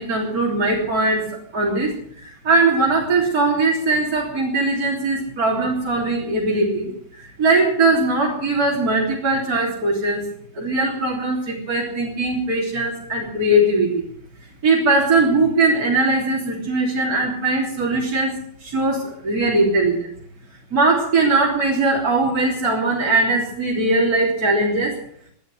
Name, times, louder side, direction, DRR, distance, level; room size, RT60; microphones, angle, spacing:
voice 1, 0.0-1.9 2.2-10.3 10.5-14.0 14.6-20.1 20.7-24.9, right 2 dB, 45° right, -4 dB, 3.9 m, -20 dB
19.5 x 12.0 x 6.4 m, 0.65 s
omnidirectional pair, 2.2 m